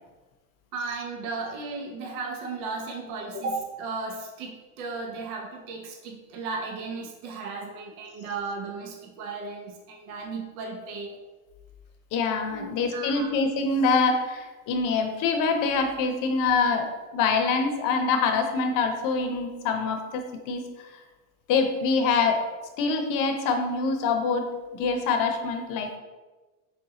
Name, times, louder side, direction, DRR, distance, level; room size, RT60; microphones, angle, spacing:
voice 1, 0.7-11.2 12.5-12.7 12.9-13.3, right 3 dB, 80° right, 1 dB, 0.8 m, -35 dB
voice 2, 12.1-20.9 21.5-22.5 22.8-26.0, left 4 dB, 50° left, 5 dB, 0.7 m, -25 dB
4.1 x 3.5 x 2.8 m, 1.2 s
supercardioid pair, 125°, 43 cm